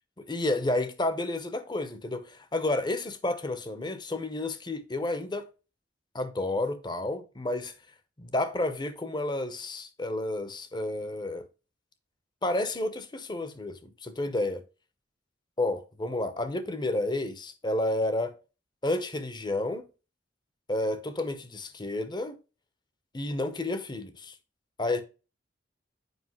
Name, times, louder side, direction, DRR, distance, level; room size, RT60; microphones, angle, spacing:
voice 1, 0.2-5.5 6.1-7.7 8.2-11.5 12.4-14.6 15.6-18.4 18.8-19.9 20.7-22.4 23.1-24.4 24.8-25.0, left 2 dB, 25° left, 0.8 m, -31 dB
8.0 x 5.1 x 3.0 m
head